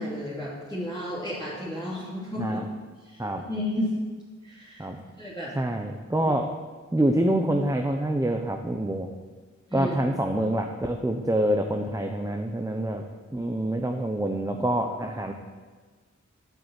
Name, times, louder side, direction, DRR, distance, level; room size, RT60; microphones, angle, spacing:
voice 1, 0.0-2.6 3.0-3.9 4.4-4.9 5.2-5.5 6.2-6.3 9.7-9.9, left 1 dB, 15° left, -9 dB, 3.1 m, -32 dB
voice 2, 5.5-6.5 6.9-9.1 9.7-13.0 13.3-15.3, right 1 dB, 10° right, 3 dB, 0.9 m, -26 dB
11.0 x 8.4 x 8.3 m, 1.4 s
wide cardioid pair, 105°, 30 cm